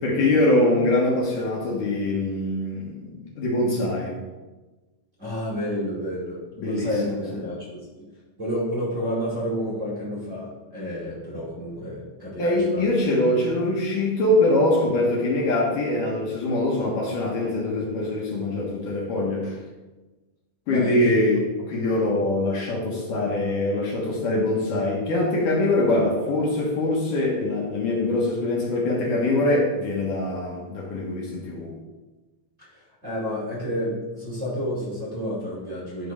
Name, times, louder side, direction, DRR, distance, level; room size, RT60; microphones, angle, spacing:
voice 1, 0.0-4.2 6.6-7.2 12.4-19.6 20.7-31.7, left 2 dB, 65° left, -3 dB, 2.5 m, -23 dB
voice 2, 5.2-8.1 8.4-12.8 20.7-21.1 32.6-36.1, equal, 25° right, -8 dB, 2.0 m, -30 dB
10.5 x 6.0 x 3.6 m, 1.2 s
omnidirectional pair, 4.4 m